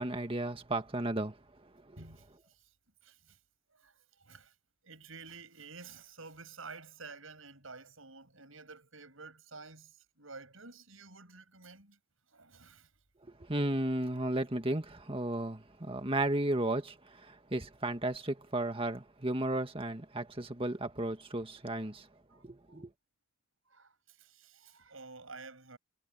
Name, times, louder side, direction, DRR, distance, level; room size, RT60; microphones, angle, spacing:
voice 1, 0.0-1.4 1.9-2.0 13.4-22.1 22.4-22.9, right 1 dB, 25° right, 1.8 m, -34 dB
voice 2, 2.0-2.7 3.0-3.4 3.7-4.6 4.8-12.0 12.3-12.9 22.3-22.8 23.6-25.8, right 4 dB, 70° right, 7.0 m, -51 dB
head